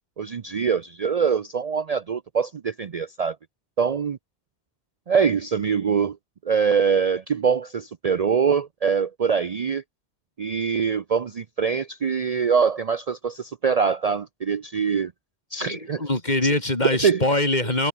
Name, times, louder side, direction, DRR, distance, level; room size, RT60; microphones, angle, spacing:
voice 1, 0.2-3.4 3.8-4.2 5.1-6.2 6.5-9.8 10.4-15.1 15.5-16.0 17.0-17.2, right 6 dB, 45° right, 0.6 m, -23 dB
voice 2, 15.6-17.9, left 2 dB, 45° left, 4.0 m, -23 dB
omnidirectional pair, 1.1 m